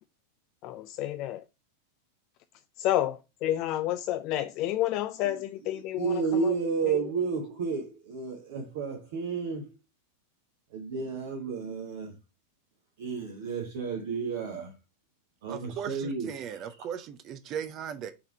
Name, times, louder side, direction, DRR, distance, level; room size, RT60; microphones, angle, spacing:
voice 1, 0.6-1.4 2.8-6.5 6.9-7.0, left 13 dB, 40° left, 0.3 m, -30 dB
voice 2, 6.0-9.8 10.7-12.1 13.0-14.7 15.4-16.3 16.6-16.8, right 5 dB, 55° right, 1.1 m, -31 dB
voice 3, 15.5-18.1, right 8 dB, 35° right, 0.5 m, -37 dB
5.8 x 3.5 x 4.6 m
figure-of-eight pair, 90°, 0 cm